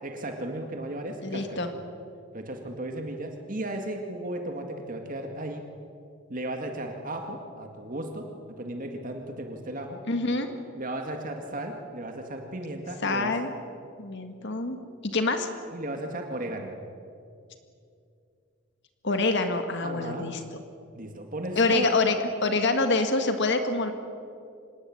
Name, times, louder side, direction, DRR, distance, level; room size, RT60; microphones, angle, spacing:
voice 1, 0.0-1.6 2.3-5.6 6.3-10.0 10.7-13.4 15.7-16.7 19.8-20.3 20.9-22.0, right 1 dB, 40° right, 3 dB, 2.1 m, -35 dB
voice 2, 1.2-1.7 10.1-10.5 13.0-13.5 14.0-14.8 15.0-15.5 19.0-20.4 21.5-23.9, left 3 dB, 60° left, 7 dB, 1.8 m, -26 dB
25.5 x 20.0 x 8.7 m, 2.5 s
head